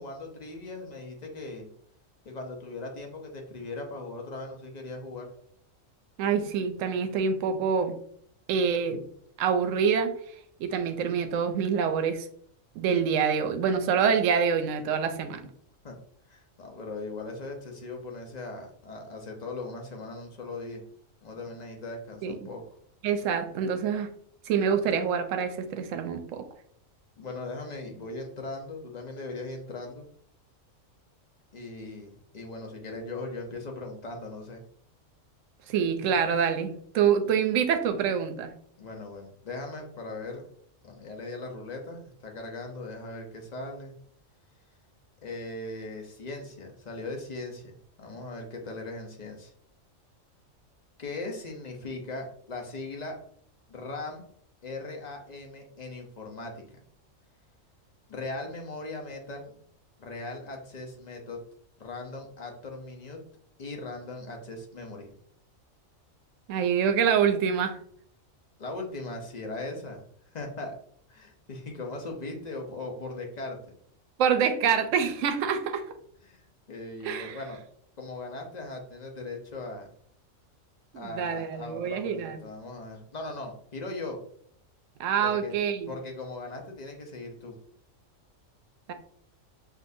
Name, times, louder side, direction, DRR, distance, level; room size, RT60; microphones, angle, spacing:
voice 1, 0.0-1.7 2.2-5.3 15.8-15.9 16.3-20.8 21.2-22.6 27.2-30.0 31.5-34.6 38.8-40.4 40.8-43.9 45.2-49.5 51.0-53.2 53.7-54.3 54.6-56.8 58.1-59.6 60.0-61.4 61.8-63.2 63.6-65.1 68.6-70.8 71.1-73.6 76.3-76.4 76.7-77.6 78.0-79.9 80.9-84.2 85.2-85.5 85.9-87.5, left 2 dB, 40° left, 2 dB, 0.7 m, -39 dB
voice 2, 6.2-8.0 8.5-9.0 9.4-10.1 10.6-12.3 12.8-15.4 22.2-22.5 23.0-24.1 24.5-26.4 35.7-38.5 66.5-67.8 74.2-75.8 77.0-77.4 80.9-82.4 85.0-85.9 88.9-89.0, right 7 dB, 75° right, 8 dB, 0.9 m, -26 dB
5.9 x 2.6 x 2.6 m, 0.63 s
omnidirectional pair, 1.4 m